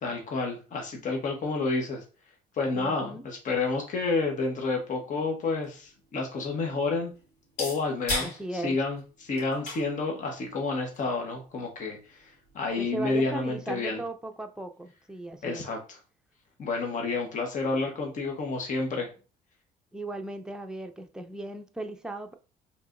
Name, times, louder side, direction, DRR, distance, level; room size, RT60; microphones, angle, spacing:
voice 1, 0.0-2.0 2.5-7.1 7.6-14.0 15.4-15.8 16.6-19.1, left 3 dB, 50° left, 1.2 m, -30 dB
voice 2, 2.7-3.3 8.2-8.8 12.8-15.7 19.9-22.3, right 2 dB, 5° right, 0.5 m, -37 dB
sound 1, 5.4-13.1, left 2 dB, 75° left, 2.5 m, -40 dB
4.7 x 3.5 x 2.6 m
cardioid pair, 110°, 17 cm